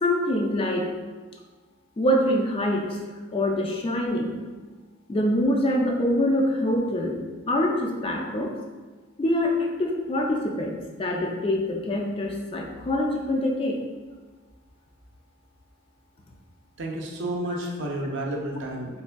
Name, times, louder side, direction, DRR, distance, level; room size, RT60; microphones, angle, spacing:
voice 1, 0.0-0.9 2.0-3.0 3.3-4.4 5.1-7.2 7.5-8.5 9.2-13.8 17.5-17.6, left 1 dB, 25° left, 0 dB, 0.3 m, -25 dB
voice 2, 16.8-19.0, right 1 dB, 60° right, -1 dB, 0.5 m, -31 dB
3.4 x 3.2 x 2.2 m, 1.4 s
head